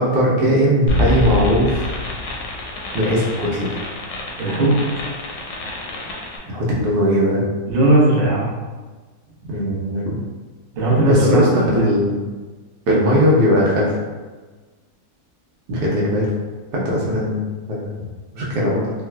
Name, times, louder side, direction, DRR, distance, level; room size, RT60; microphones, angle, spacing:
voice 1, 0.0-1.9 2.9-3.8 6.5-7.4 9.5-10.1 11.0-12.2 12.9-13.9 15.7-16.3 16.7-17.4 17.7-17.9 18.3-18.9, equal, 85° right, -5 dB, 1.2 m, -19 dB
sound 1, 0.9-6.4, left 2 dB, 65° left, 0.8 m, -26 dB
voice 2, 4.4-4.8 7.7-8.5 10.7-11.9, right 1 dB, 40° right, -5 dB, 0.7 m, -17 dB
3.9 x 2.3 x 2.2 m, 1.3 s
omnidirectional pair, 1.7 m